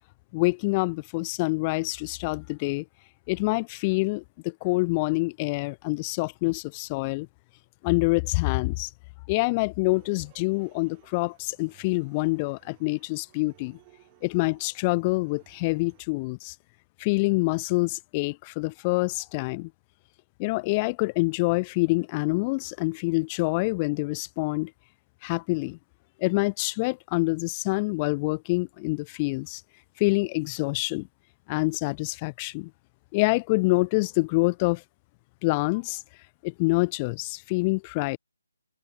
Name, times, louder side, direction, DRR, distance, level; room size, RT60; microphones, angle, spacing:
voice 1, 0.3-2.8 3.3-7.3 7.8-8.9 9.3-13.8 14.2-16.5 17.0-19.7 20.4-24.7 25.2-25.8 26.2-29.6 30.0-31.1 31.5-32.7 33.1-34.8 35.4-36.0 36.4-38.2, left 26 dB, 25° left, 0.3 m, -26 dB
sound 1, 9.9-16.0, right 25 dB, 25° right, 6.5 m, -59 dB
figure-of-eight pair, 150°, 0 cm